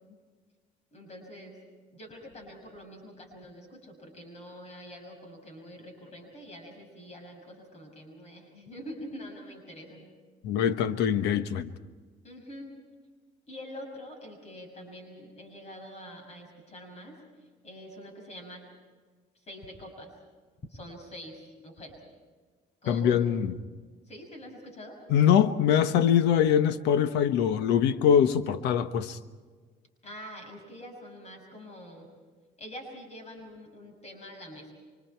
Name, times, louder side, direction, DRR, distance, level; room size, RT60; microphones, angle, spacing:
voice 1, 0.9-1.6 1.9-10.1 12.2-12.7 13.5-18.6 19.3-20.1 20.7-22.0 22.8-23.2 24.1-25.0 30.0-32.1 32.6-34.7, equal, 40° left, 6.2 m, -45 dB
voice 2, 10.4-11.7 22.9-23.6 25.1-29.2, left 9 dB, 90° left, 1.2 m, -23 dB
30.0 x 25.0 x 4.6 m
cardioid pair, 110°, 17 cm